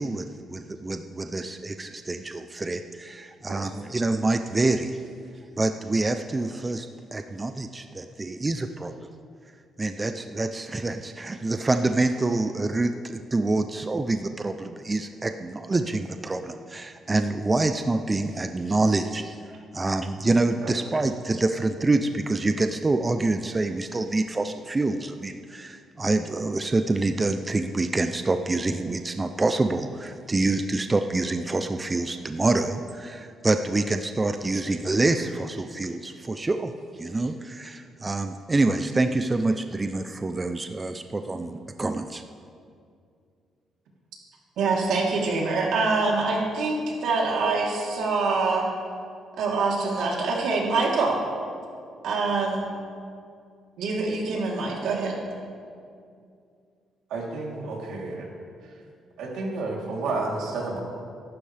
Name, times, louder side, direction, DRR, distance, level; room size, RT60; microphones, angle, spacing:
voice 1, 0.0-5.0 5.6-9.1 9.8-19.4 19.7-36.7 37.0-42.2, right 2 dB, 15° right, 7 dB, 0.4 m, -26 dB
voice 2, 44.6-48.6 49.4-51.2 52.0-52.7 53.8-55.2, right 3 dB, 70° right, -3 dB, 3.2 m, -25 dB
voice 3, 57.1-58.3 59.2-60.8, right 3 dB, 90° right, -2 dB, 3.1 m, -31 dB
24.0 x 12.0 x 3.3 m, 2.3 s
cardioid pair, 170°, 0 cm